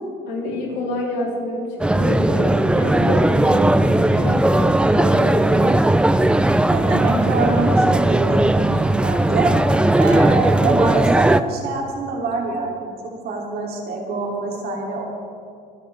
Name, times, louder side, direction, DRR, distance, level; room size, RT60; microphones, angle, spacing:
voice 1, 0.3-5.8, left 2 dB, 75° left, -3 dB, 3.6 m, -27 dB
sound 1, 1.8-11.4, right 1 dB, 5° right, 0.4 m, -17 dB
voice 2, 6.7-9.6 10.0-12.9 13.2-15.0, right 3 dB, 65° right, -1 dB, 2.9 m, -25 dB
24.5 x 9.5 x 3.5 m, 2.3 s
cardioid pair, 110°, 17 cm